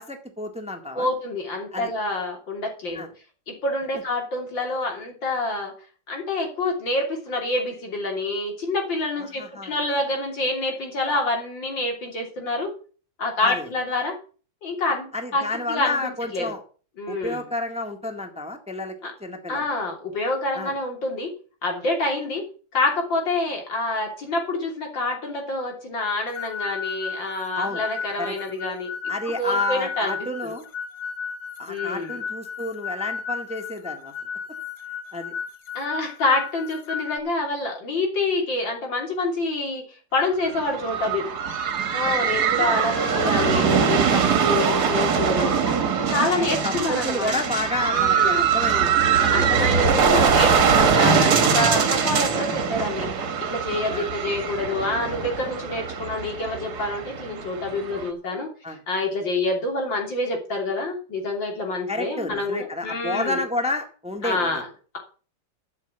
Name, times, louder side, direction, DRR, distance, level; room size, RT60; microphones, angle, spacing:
voice 1, 0.0-1.1 1.7-1.9 2.9-3.1 9.2-9.7 13.4-13.7 15.1-16.6 17.1-18.9 19.2-19.6 20.5-20.7 27.6-27.8 28.2-28.4 29.1-30.6 31.6-34.1 35.1-35.3 42.0-42.3 43.0-43.1 46.3-48.9 49.2-49.5 50.1-50.8 51.4-51.6 52.3-52.5 53.9-54.1 58.6-58.8 61.9-64.6, left 2 dB, 5° right, 5 dB, 1.5 m, -30 dB
voice 2, 0.9-3.0 3.5-5.7 6.1-12.7 13.2-14.2 14.6-15.1 15.3-16.5 17.0-17.5 19.0-19.1 19.5-21.3 21.6-22.4 22.7-29.1 29.4-30.2 30.4-30.5 31.7-32.2 35.8-39.8 40.1-41.3 41.9-45.6 46.1-47.3 47.8-48.5 49.3-53.1 53.4-58.5 58.9-63.4 64.2-64.7, left 2 dB, 80° left, 2 dB, 3.9 m, -27 dB
sound 1, 26.3-37.2, left 6 dB, 60° left, 1.4 m, -34 dB
sound 2, 40.4-58.1, right 6 dB, 60° right, 1.9 m, -22 dB
12.5 x 6.6 x 7.9 m, 0.40 s
omnidirectional pair, 2.0 m